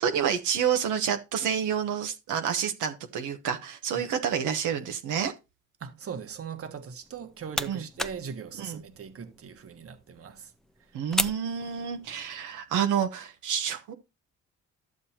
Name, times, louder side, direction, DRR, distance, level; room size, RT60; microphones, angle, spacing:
voice 1, 0.0-5.3 7.7-7.8 8.6-8.8 10.9-13.9, right 8 dB, 80° right, 1.1 m, -29 dB
voice 2, 5.8-10.5, right 7 dB, 50° right, 1.4 m, -40 dB
sound 1, 7.0-12.3, left 1 dB, ahead, 0.7 m, -37 dB
13.0 x 7.3 x 2.8 m
cardioid pair, 90°, 30 cm